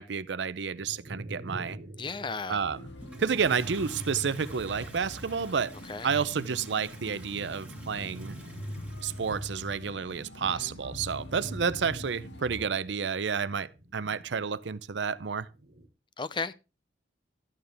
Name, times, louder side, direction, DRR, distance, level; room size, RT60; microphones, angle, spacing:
voice 1, 0.0-1.8 2.5-2.8 3.2-5.8 6.0-8.4 9.0-15.5, right 6 dB, 80° right, 0.6 m, -30 dB
sound 1, 0.7-6.0 6.3-14.8 15.2-15.9, right 1 dB, 60° right, 1.5 m, -46 dB
voice 2, 2.0-2.6 5.8-6.1 10.4-10.7 16.2-16.5, left 4 dB, 25° left, 0.5 m, -35 dB
sound 2, 2.5-12.7, left 1 dB, 75° left, 1.7 m, -44 dB
Toilet flush, 3.0-9.8, right 1 dB, 10° right, 1.7 m, -50 dB
12.5 x 8.9 x 3.4 m
head